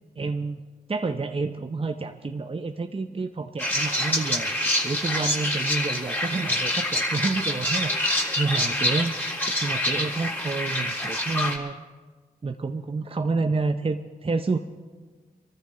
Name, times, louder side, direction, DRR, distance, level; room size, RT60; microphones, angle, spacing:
voice 1, 0.2-0.6 0.9-4.5 4.8-9.1 9.6-11.8 12.4-14.6, right 3 dB, 35° right, 7 dB, 0.7 m, -29 dB
sound 1, 3.6-11.6, left 1 dB, 10° left, 3.7 m, -26 dB
23.0 x 14.0 x 3.9 m, 1.4 s
cardioid pair, 45°, 16 cm